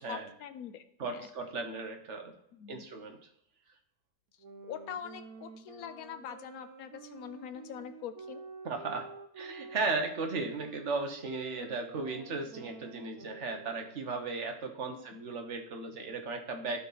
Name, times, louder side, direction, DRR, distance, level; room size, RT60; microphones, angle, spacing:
voice 1, 0.0-1.3 2.5-2.9 4.7-8.4 11.6-11.8 14.8-15.1, left 9 dB, 65° left, 9 dB, 1.1 m, -44 dB
voice 2, 1.0-2.3 2.7-3.2 8.6-9.1 9.4-16.8, right 3 dB, 45° right, 4 dB, 1.4 m, -36 dB
sound 1, 4.4-14.1, right 5 dB, 60° right, 1.2 m, -50 dB
12.5 x 4.3 x 4.1 m, 0.75 s
omnidirectional pair, 1.8 m